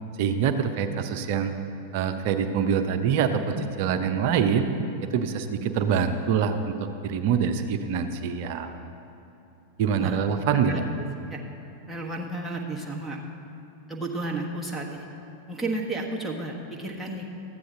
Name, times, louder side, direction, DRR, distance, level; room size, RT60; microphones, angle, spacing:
voice 1, 0.2-1.5 1.9-4.7 5.0-8.8 9.8-10.8, right 7 dB, 50° right, 8 dB, 0.7 m, -25 dB
voice 2, 10.5-10.8 11.3-11.4 11.9-13.2 13.9-15.0 15.5-17.3, right 2 dB, ahead, 0 dB, 1.4 m, -32 dB
13.5 x 9.4 x 3.8 m, 2.8 s
figure-of-eight pair, 90°, 0 cm